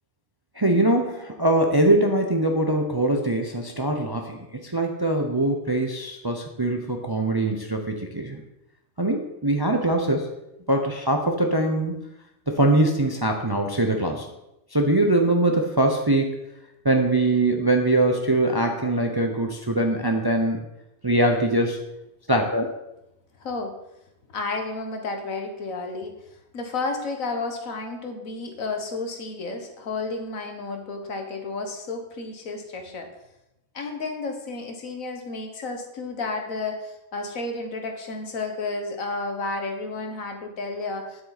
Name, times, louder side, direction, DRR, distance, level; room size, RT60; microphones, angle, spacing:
voice 1, 0.6-8.4 9.0-10.3 10.7-12.0 12.5-14.3 14.7-16.4 16.8-20.6 21.0-21.8 22.3-22.7, right 1 dB, 25° right, 3 dB, 0.6 m, -22 dB
voice 2, 23.4-23.7 24.3-26.1 26.5-33.1 33.7-41.2, left 3 dB, 70° left, 4 dB, 1.7 m, -32 dB
9.6 x 7.9 x 4.1 m, 0.89 s
omnidirectional pair, 1.5 m